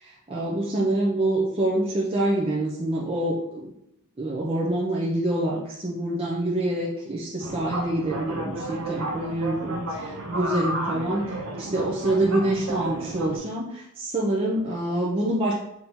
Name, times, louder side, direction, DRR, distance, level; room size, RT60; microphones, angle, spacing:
voice 1, 0.0-3.7 4.2-15.5, right 1 dB, 25° right, -5 dB, 0.6 m, -26 dB
sound 1, 7.4-13.4, right 1 dB, 75° right, 0.7 m, -32 dB
4.3 x 2.8 x 3.6 m, 0.79 s
head